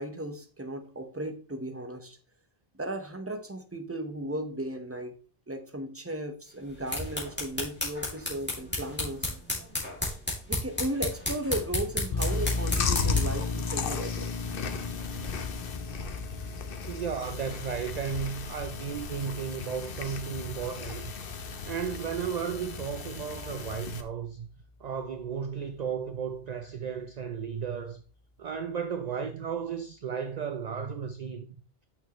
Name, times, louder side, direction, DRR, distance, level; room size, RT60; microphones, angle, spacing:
voice 1, 0.0-2.2 2.8-5.1 5.5-9.3 10.5-14.5, right 1 dB, 15° right, 1.0 m, -35 dB
sound 1, 6.6-13.4, left 1 dB, 10° left, 2.6 m, -33 dB
sound 2, 12.1-23.4, left 3 dB, 40° left, 0.5 m, -37 dB
Chewing mastication, 12.2-24.0, left 5 dB, 65° left, 1.0 m, -36 dB
voice 2, 16.9-21.1 21.7-24.5 24.8-28.0 28.4-31.5, right 7 dB, 50° right, 0.6 m, -34 dB
8.9 x 6.4 x 3.1 m
omnidirectional pair, 1.0 m